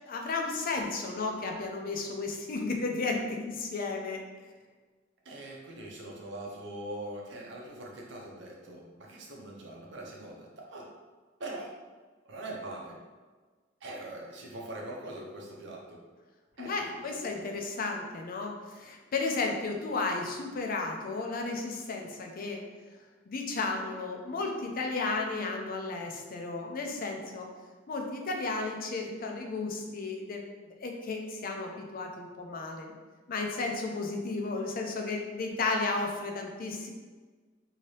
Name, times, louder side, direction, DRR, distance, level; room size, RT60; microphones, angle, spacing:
voice 1, 0.1-4.2 16.6-22.6 23.3-27.5 27.9-30.4 30.8-32.9 33.3-36.9, left 3 dB, 50° left, 2 dB, 0.5 m, -33 dB
voice 2, 5.2-10.9 11.4-11.8 12.2-13.0 13.8-16.0 16.6-17.6, right 1 dB, 65° right, -2 dB, 0.7 m, -42 dB
2.8 x 2.7 x 3.1 m, 1.4 s
head